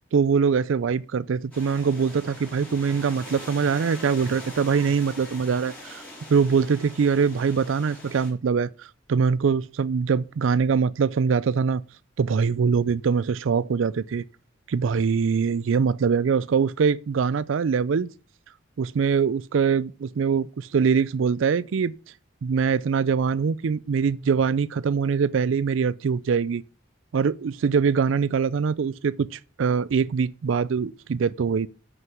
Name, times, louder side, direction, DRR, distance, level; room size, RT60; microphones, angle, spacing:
voice 1, 0.1-6.0 6.3-11.8 12.2-14.2 14.7-18.1 18.8-21.9 22.4-26.6 27.1-31.7, right 6 dB, 80° right, 0.4 m, -23 dB
sound 1, 1.5-8.3, left 1 dB, 5° left, 4.7 m, -42 dB
9.1 x 6.6 x 6.0 m
head